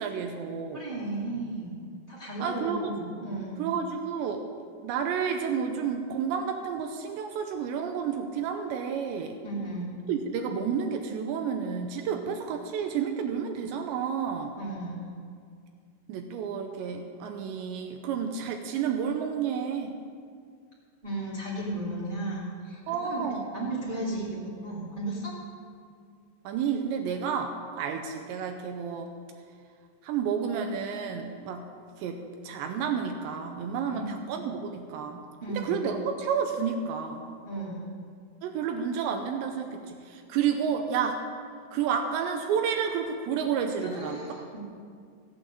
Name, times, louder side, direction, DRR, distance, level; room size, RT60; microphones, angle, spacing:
voice 1, 0.0-0.8 2.4-2.9 3.6-4.4 4.8-9.4 10.1-14.6 16.1-20.0 22.9-23.5 26.4-29.1 30.0-31.7 32.0-37.3 38.4-41.2 41.7-44.2, right 7 dB, 80° right, 5 dB, 2.6 m, -30 dB
voice 2, 0.7-1.7 2.1-3.6 9.4-9.9 14.6-15.1 21.0-23.2 23.5-25.3 33.9-34.1 35.4-35.8 37.4-37.9 43.8-44.6, right 2 dB, 50° right, -7 dB, 0.5 m, -34 dB
14.5 x 8.5 x 7.7 m, 2.2 s
omnidirectional pair, 5.8 m